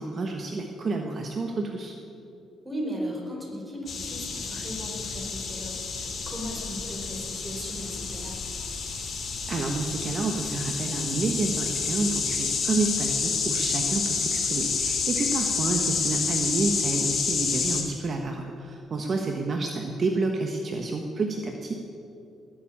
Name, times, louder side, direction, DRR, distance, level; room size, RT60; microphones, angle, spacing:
voice 1, 0.0-1.9 9.5-21.7, right 3 dB, 45° right, 2 dB, 1.3 m, -29 dB
voice 2, 2.6-8.4, equal, 10° right, -2 dB, 4.9 m, -37 dB
sound 1, 3.9-17.8, left 5 dB, 55° left, 2.8 m, -29 dB
19.5 x 7.4 x 8.7 m, 2.7 s
cardioid pair, 90°, 0 cm